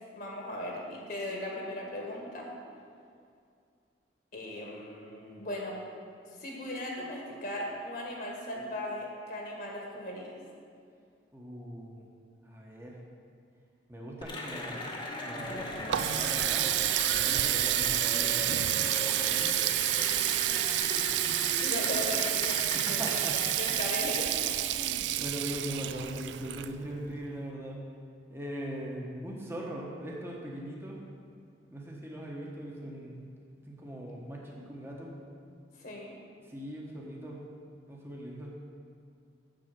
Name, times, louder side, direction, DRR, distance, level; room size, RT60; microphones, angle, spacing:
voice 1, 0.1-2.5 4.3-5.8 6.4-10.3 21.6-23.1 23.6-24.5 35.8-36.2, left 1 dB, 50° left, -2 dB, 1.5 m, -37 dB
voice 2, 11.3-12.1 12.4-13.0 13.9-14.9 15.2-16.7 17.1-20.0 22.7-23.4 24.7-27.8 28.3-31.0 31.7-33.3 33.7-35.1 36.5-37.4 37.9-38.6, equal, 15° right, -3 dB, 1.2 m, -40 dB
Cheering / Applause, 14.2-24.2, left 2 dB, 25° left, 1.1 m, -38 dB
Water tap faucet, 15.5-27.1, right 14 dB, 75° right, 0.3 m, -29 dB
7.8 x 7.3 x 6.0 m, 2.3 s
head